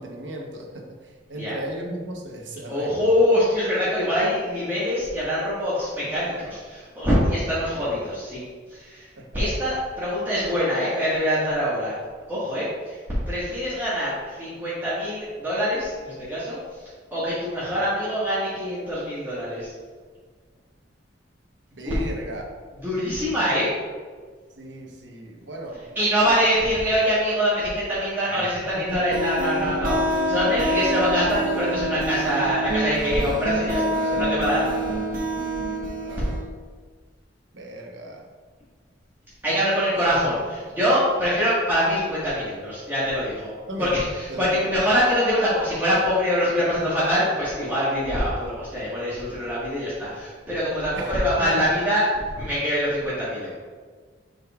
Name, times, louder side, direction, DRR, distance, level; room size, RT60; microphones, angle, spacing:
voice 1, 0.0-3.1 9.2-9.3 21.7-22.5 24.6-25.8 28.3-28.8 36.0-36.4 37.5-38.3 43.7-44.0 44.3-44.7 50.9-51.1 51.4-51.5, right 1 dB, 85° right, 1 dB, 1.0 m, -36 dB
voice 2, 2.7-8.4 8.7-9.1 9.3-12.0 12.3-16.8 17.1-19.7 21.8-22.1 22.8-23.7 25.9-35.0 39.4-43.5 43.8-52.0 52.3-53.5, equal, 15° right, -12 dB, 1.6 m, -24 dB
sound 1, 28.9-36.4, right 1 dB, 50° right, 1.1 m, -26 dB
7.8 x 5.3 x 2.4 m, 1.5 s
head